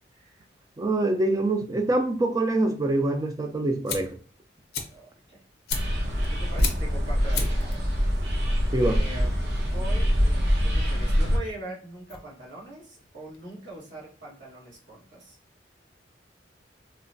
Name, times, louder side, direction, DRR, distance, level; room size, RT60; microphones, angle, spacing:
voice 1, 0.1-0.5 4.8-5.4 6.0-8.1 8.8-15.4, right 1 dB, 90° right, 1.4 m, -42 dB
voice 2, 0.8-4.2 8.7-9.0, right 2 dB, 20° right, 0.3 m, -25 dB
Fire, 3.7-13.9, left 6 dB, 60° left, 0.5 m, -39 dB
sound 1, 5.7-11.4, equal, 70° right, 0.7 m, -24 dB
3.0 x 2.1 x 2.6 m
head